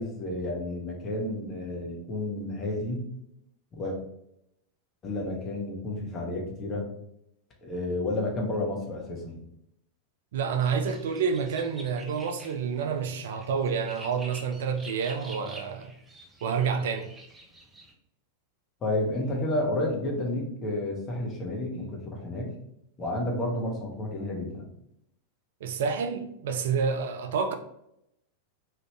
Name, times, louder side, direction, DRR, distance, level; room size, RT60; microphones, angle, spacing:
voice 1, 0.0-3.0 3.8-4.0 5.0-6.9 7.6-9.4 18.8-22.5 23.0-24.7, left 1 dB, 25° left, 0.9 m, -31 dB
voice 2, 10.3-15.9 16.4-17.1 25.6-27.5, right 6 dB, 60° right, 0.3 m, -28 dB
sound 1, 10.6-17.9, right 1 dB, 10° right, 0.6 m, -48 dB
3.3 x 2.5 x 3.2 m
figure-of-eight pair, 90°, 0 cm